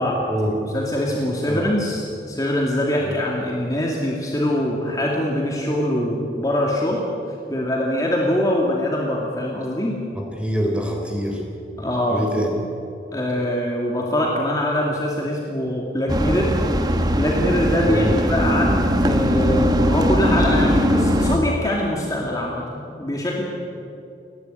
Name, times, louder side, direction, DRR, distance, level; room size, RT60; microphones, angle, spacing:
voice 1, 0.6-7.0 7.5-10.0 11.8-12.2 13.1-16.5 17.1-23.4, left 1 dB, 20° left, -2 dB, 2.5 m, -23 dB
voice 2, 10.2-11.4 12.1-12.5 17.8-18.2, equal, 5° right, 1 dB, 3.8 m, -25 dB
sound 1, 16.1-21.4, equal, 20° right, 1.1 m, -20 dB
29.5 x 12.0 x 9.5 m, 2.6 s
head